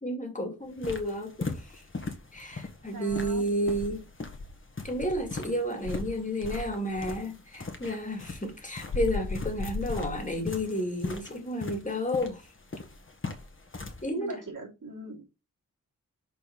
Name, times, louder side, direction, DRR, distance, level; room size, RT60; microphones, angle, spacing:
voice 1, 0.0-1.8 2.3-4.0 4.8-12.4 14.0-14.4, equal, 25° left, 2.3 m, -31 dB
sound 1, 0.6-14.0, left 3 dB, 40° left, 1.7 m, -41 dB
voice 2, 2.9-3.5 14.2-15.2, right 2 dB, 75° right, 3.5 m, -41 dB
Insect, 3.1-5.4 5.8-7.3 8.9-10.6, left 3 dB, 80° left, 0.9 m, -37 dB
6.5 x 4.6 x 5.7 m
wide cardioid pair, 110°, 32 cm